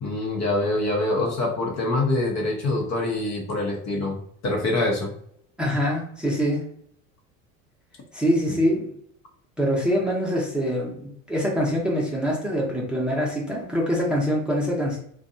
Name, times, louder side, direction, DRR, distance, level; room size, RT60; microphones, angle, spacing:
voice 1, 0.0-4.2 4.4-5.1 8.5-8.6, left 2 dB, 45° left, 0 dB, 0.8 m, -25 dB
voice 2, 5.6-6.6 8.1-8.9 9.6-15.0, equal, ahead, -4 dB, 0.8 m, -24 dB
2.6 x 2.2 x 2.6 m, 0.67 s
supercardioid pair, 90°, 39 cm